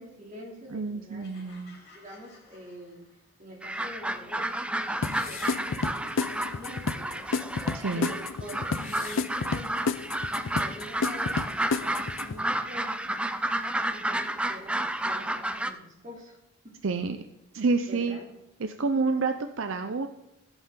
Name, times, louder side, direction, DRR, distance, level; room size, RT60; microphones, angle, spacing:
voice 1, 0.0-1.5 1.9-3.0 3.4-7.3 7.9-10.0 10.5-13.1 13.9-14.8 15.0-16.4 16.6-16.8 17.9-18.3, equal, 35° right, -1 dB, 2.8 m, -45 dB
voice 2, 0.7-1.8 7.7-8.1 16.8-17.2 17.5-18.2 18.6-20.1, right 4 dB, 70° right, 8 dB, 0.6 m, -28 dB
sound 1, 1.2-3.5, left 3 dB, 50° left, 3.3 m, -56 dB
sound 2, 3.6-15.7, right 1 dB, 5° right, 0.4 m, -31 dB
sound 3, 5.0-12.4, left 4 dB, 75° left, 0.5 m, -31 dB
14.5 x 8.2 x 3.8 m, 0.95 s
head